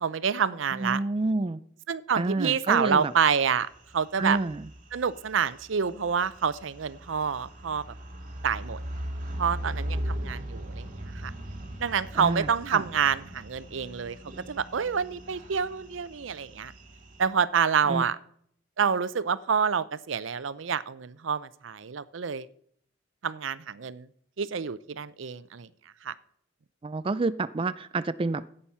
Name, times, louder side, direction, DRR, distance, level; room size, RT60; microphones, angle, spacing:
voice 1, 0.0-1.0 1.9-4.4 4.9-7.8 8.4-8.8 9.4-10.9 11.2-11.3 11.8-14.2 14.5-16.7 17.2-18.2 18.8-22.5 23.2-24.1 24.4-25.7 26.0-26.1, right 6 dB, 80° right, 16 dB, 0.6 m, -27 dB
voice 2, 0.7-1.6 2.2-3.1 4.2-4.7 12.1-12.9 17.9-18.1 26.8-28.5, right 3 dB, 30° right, 13 dB, 0.4 m, -29 dB
sound 1, 2.7-17.3, equal, 45° right, 2.1 m, -39 dB
15.0 x 8.8 x 5.6 m, 0.67 s
head